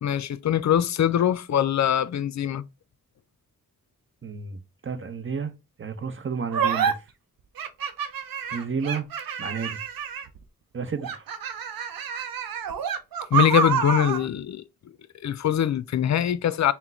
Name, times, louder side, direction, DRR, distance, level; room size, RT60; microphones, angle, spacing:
voice 1, 0.0-2.6 13.3-14.6 15.2-16.7, left 10 dB, 50° left, 0.5 m, -23 dB
voice 2, 4.2-5.5 5.8-7.0 8.5-9.1 9.4-9.8 10.7-11.2, right 5 dB, 35° right, 0.7 m, -31 dB
sound 1, 6.5-6.9 7.6-10.4 11.0-14.2, right 7 dB, 75° right, 0.7 m, -28 dB
3.8 x 2.2 x 4.2 m
cardioid pair, 50°, 35 cm